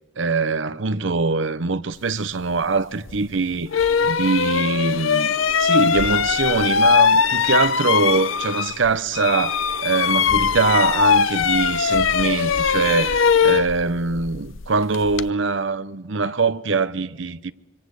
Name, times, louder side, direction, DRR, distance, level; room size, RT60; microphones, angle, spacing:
voice 1, 0.2-3.7 4.0-5.3 5.6-17.5, right 4 dB, 75° right, 0.8 m, -23 dB
sound 1, 3.1-3.2 3.7-8.9 9.1-15.3, left 6 dB, 85° left, 0.8 m, -20 dB
26.0 x 24.0 x 8.1 m
head